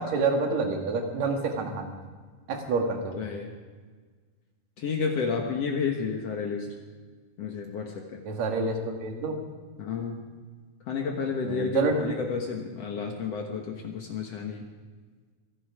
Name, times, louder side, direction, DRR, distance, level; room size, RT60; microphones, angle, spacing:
voice 1, 0.0-2.0 2.5-3.2 8.2-9.4 11.4-12.1, right 3 dB, 50° right, 3 dB, 2.7 m, -28 dB
voice 2, 3.2-3.5 4.8-6.8 7.4-8.2 9.8-10.2 10.9-14.7, left 5 dB, 70° left, 2 dB, 1.5 m, -31 dB
23.0 x 11.5 x 4.9 m, 1.5 s
omnidirectional pair, 4.8 m